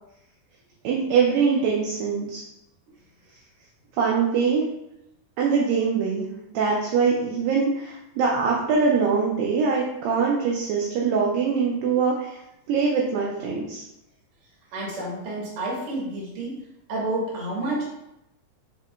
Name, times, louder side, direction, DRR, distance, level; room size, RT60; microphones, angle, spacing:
voice 1, 0.8-2.4 4.0-4.6 5.4-6.2 6.5-12.4 12.7-13.8, right 5 dB, 90° right, -2 dB, 2.0 m, -23 dB
voice 2, 14.7-16.6 16.9-17.8, right 2 dB, 70° right, -5 dB, 1.3 m, -29 dB
6.2 x 2.8 x 2.2 m, 0.86 s
omnidirectional pair, 4.6 m